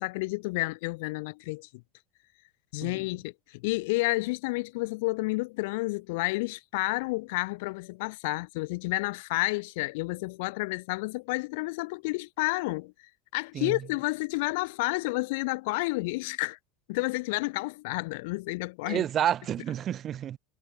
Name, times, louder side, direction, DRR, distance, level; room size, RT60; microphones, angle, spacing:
voice 1, 0.0-1.7 2.7-12.9 13.3-16.6 16.9-19.0, left 24 dB, 65° left, 1.9 m, -30 dB
voice 2, 18.9-20.4, right 10 dB, 40° right, 4.3 m, -29 dB
hypercardioid pair, 75°, 0 cm